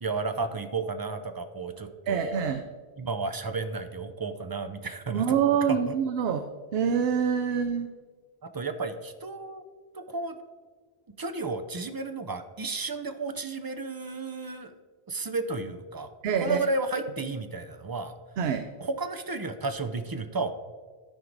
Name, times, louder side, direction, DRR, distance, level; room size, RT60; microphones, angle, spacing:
voice 1, 0.0-2.4 3.0-5.4 5.7-6.0 8.4-9.6 9.9-10.3 11.2-14.7 15.1-16.1 16.4-18.1 18.8-20.6, right 3 dB, 40° right, 8 dB, 0.3 m, -32 dB
voice 2, 2.1-2.6 5.1-6.5 6.7-7.9 16.2-16.6 18.4-18.7, right 7 dB, 75° right, 8 dB, 0.8 m, -25 dB
13.0 x 4.6 x 3.9 m, 1.5 s
omnidirectional pair, 1.1 m